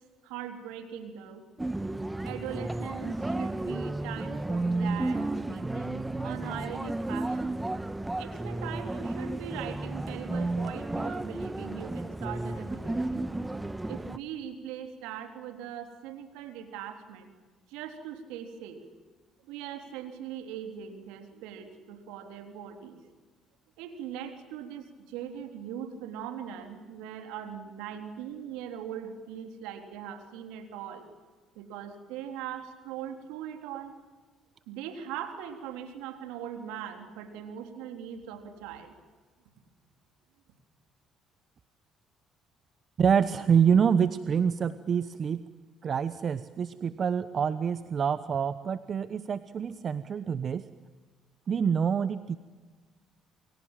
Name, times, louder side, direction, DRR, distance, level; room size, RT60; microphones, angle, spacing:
voice 1, 0.2-1.4 2.2-7.6 8.2-13.3 13.9-17.3 17.7-18.8 19.5-23.0 23.8-31.1 31.6-34.0 34.7-38.9, right 9 dB, 80° right, 5 dB, 3.6 m, -40 dB
sound 1, 1.6-14.2, right 2 dB, 15° right, 1.3 m, -33 dB
voice 2, 43.0-45.5 45.8-50.6 51.5-52.4, right 7 dB, 50° right, 13 dB, 1.1 m, -26 dB
29.0 x 23.5 x 7.5 m, 1.4 s
hypercardioid pair, 55°, 0 cm